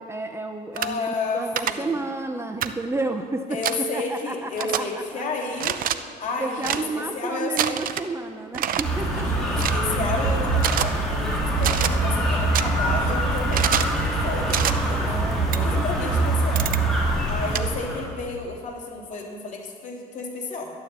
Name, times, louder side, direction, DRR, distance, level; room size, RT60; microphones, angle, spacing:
voice 1, 0.0-5.2 5.9-6.0 6.4-9.7 15.0-16.3, right 2 dB, 15° right, 6 dB, 0.7 m, -32 dB
voice 2, 0.7-1.9 3.5-5.8 6.2-7.8 9.1-15.0 15.5-16.6 17.3-20.7, left 3 dB, 50° left, -2 dB, 3.4 m, -31 dB
sound 1, 0.8-0.9 1.6-1.7 2.6-2.7 3.6-3.8 4.6-4.8 5.6-6.0 6.6-6.8 7.6-8.1 8.5-8.8 9.6-9.8 10.6-10.9 11.6-11.9 12.5-12.6 13.5-13.9 14.5-14.7 15.5-15.6 16.6-16.8 17.5-17.6, right 10 dB, 55° right, 0.6 m, -25 dB
sound 2, 8.8-18.1, right 2 dB, 5° left, 3.7 m, -24 dB
12.5 x 11.0 x 7.4 m, 2.2 s
cardioid pair, 110°, 17 cm